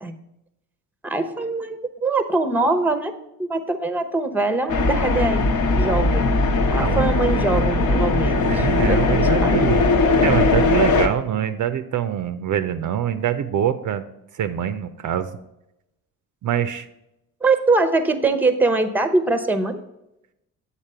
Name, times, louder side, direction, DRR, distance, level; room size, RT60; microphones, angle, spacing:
voice 1, 1.0-3.1 3.4-6.2 6.7-9.5 17.4-19.8, right 3 dB, 5° right, 9 dB, 0.8 m, -23 dB
sound 1, 4.7-11.1, left 3 dB, 55° left, 1.0 m, -19 dB
voice 2, 8.5-9.8 10.2-14.0 14.3-15.3 16.4-16.9, right 10 dB, 55° right, 10 dB, 0.6 m, -24 dB
7.4 x 4.2 x 6.7 m, 0.88 s
supercardioid pair, 70°, 37 cm